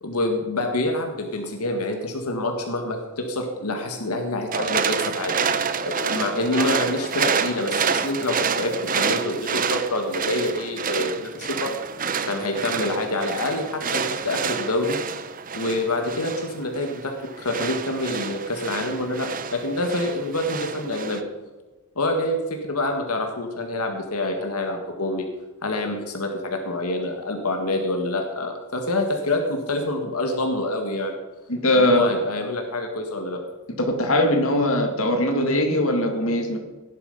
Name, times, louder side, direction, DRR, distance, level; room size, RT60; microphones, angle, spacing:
voice 1, 0.0-5.4 5.8-11.8 12.2-15.0 15.5-21.2 22.0-25.3 25.6-31.2 31.7-33.4, left 1 dB, 85° left, 4 dB, 1.9 m, -26 dB
sound 1, 4.5-21.2, right 6 dB, 40° right, 0.8 m, -28 dB
voice 2, 31.5-32.0 33.8-36.6, left 1 dB, 65° left, 4 dB, 2.2 m, -20 dB
17.0 x 11.5 x 5.4 m, 1.2 s
head